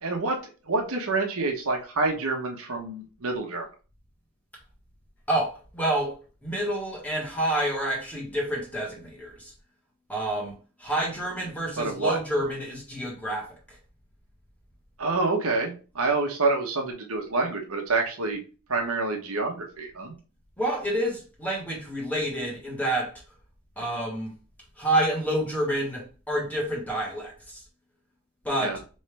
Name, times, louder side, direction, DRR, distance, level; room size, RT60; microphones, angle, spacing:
voice 1, 0.0-0.4 0.7-3.7 11.8-12.2 15.0-18.4 18.7-20.2 28.6-28.8, right 3 dB, 75° right, 1.0 m, -27 dB
voice 2, 5.3-6.2 6.4-9.5 10.1-10.5 10.8-13.8 20.6-23.1 23.8-24.3 24.8-27.6 28.4-28.8, right 1 dB, 5° left, 1.3 m, -28 dB
4.3 x 3.2 x 3.3 m
head